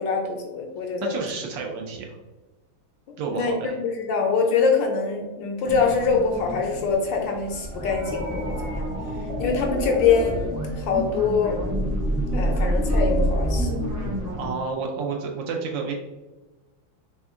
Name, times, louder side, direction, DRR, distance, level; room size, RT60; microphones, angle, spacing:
voice 1, 0.0-1.2 3.3-3.5 3.8-8.8 9.4-11.6 12.3-13.7, left 5 dB, 70° left, 2 dB, 1.2 m, -24 dB
voice 2, 1.0-2.1 3.2-3.8 14.4-15.9, right 5 dB, 75° right, 1 dB, 1.2 m, -30 dB
sound 1, 5.6-14.5, right 1 dB, 25° right, 0.4 m, -27 dB
3.6 x 3.3 x 3.5 m, 1.1 s
omnidirectional pair, 2.3 m